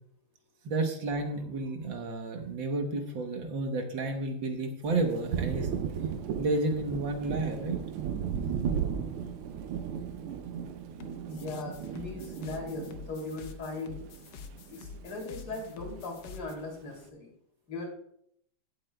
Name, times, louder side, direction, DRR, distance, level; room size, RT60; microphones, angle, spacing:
voice 1, 0.6-5.7 6.4-7.8, right 2 dB, 65° right, 5 dB, 1.8 m, -31 dB
Thunder, 4.9-14.6 14.9-16.1, right 7 dB, 85° right, 1.6 m, -36 dB
sound 1, 11.0-16.5, left 5 dB, 65° left, 1.2 m, -47 dB
voice 2, 11.3-14.0 14.7-17.3 17.7-17.9, left 3 dB, 85° left, 0 dB, 3.7 m, -39 dB
16.5 x 7.9 x 2.2 m, 0.71 s
omnidirectional pair, 2.3 m